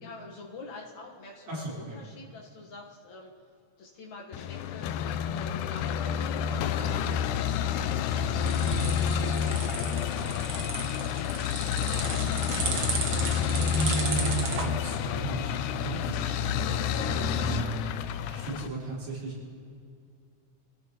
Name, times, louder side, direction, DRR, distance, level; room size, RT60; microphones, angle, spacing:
voice 1, 0.0-3.3 3.8-12.7, left 3 dB, 75° left, -2 dB, 2.8 m, -47 dB
voice 2, 1.5-2.0 13.7-17.8 18.3-19.3, right 4 dB, 80° right, -7 dB, 6.1 m, -35 dB
sound 1, 4.3-18.7, left 8 dB, 90° left, 2.1 m, -29 dB
sound 2, 7.9-14.7, right 5 dB, 50° right, 1.7 m, -34 dB
26.0 x 15.0 x 3.1 m, 2.3 s
omnidirectional pair, 3.4 m